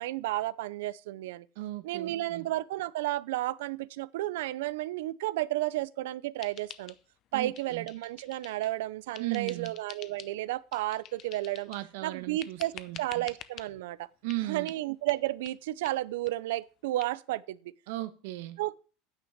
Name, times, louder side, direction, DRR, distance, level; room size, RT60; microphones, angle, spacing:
voice 1, 0.0-1.5 1.8-6.9 7.3-11.7 12.0-12.7 13.0-14.1 14.5-17.7 18.6-18.7, right 16 dB, 80° right, 0.5 m, -32 dB
voice 2, 1.6-2.5 7.3-7.9 9.2-9.7 11.7-13.3 14.2-14.7 17.9-18.6, right 18 dB, 65° right, 1.2 m, -37 dB
sound 1, 6.4-7.3 7.5-8.8 9.1-10.4 10.7-11.9 12.4-13.7 14.3-14.4 14.7-14.8 15.1-15.2 15.5-15.6 15.8-16.0 16.3-16.4 16.6-16.7 17.0-17.1, left 11 dB, 30° left, 0.6 m, -48 dB
9.5 x 5.9 x 7.2 m
supercardioid pair, 180°, 0 cm